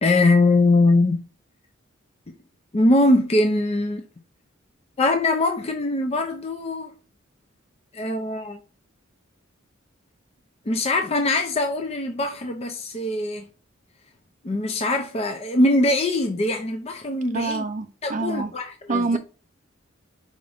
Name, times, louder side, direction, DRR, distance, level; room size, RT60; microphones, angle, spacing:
voice 1, 0.0-1.2 2.7-4.0 5.0-6.9 7.9-8.6 10.7-13.5 14.4-17.7 18.0-19.2, left 2 dB, 30° left, 0.5 m, -22 dB
voice 2, 17.3-18.5 18.9-19.2, right 3 dB, 40° right, 0.5 m, -26 dB
4.9 x 2.6 x 3.3 m
head